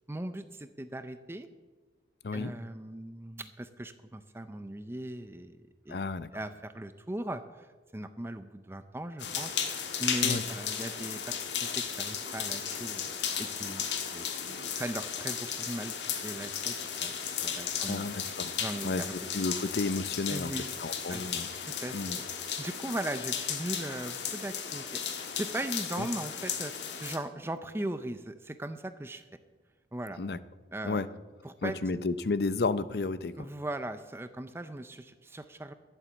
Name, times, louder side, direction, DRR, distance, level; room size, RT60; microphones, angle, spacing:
voice 1, 0.1-1.5 2.3-5.6 5.9-9.5 10.0-13.1 13.4-13.9 14.1-14.3 14.7-16.8 17.0-17.2 17.4-18.1 18.6-19.2 20.3-20.7 21.1-21.2 21.6-29.2 29.9-30.2 30.7-31.0 31.4-31.8 33.4-35.7, right 1 dB, 15° right, 10 dB, 0.5 m, -39 dB
voice 2, 5.9-6.3 10.2-10.4 17.9-18.6 18.8-19.0 19.3-20.5 20.8-21.5 21.9-22.2 26.0-26.1 30.2-30.4 30.8-31.1 31.6-33.5, left 3 dB, 65° left, 15 dB, 0.6 m, -32 dB
sound 1, 9.2-27.2, left 7 dB, 85° left, 1.4 m, -35 dB
12.5 x 7.4 x 8.0 m, 1.3 s
head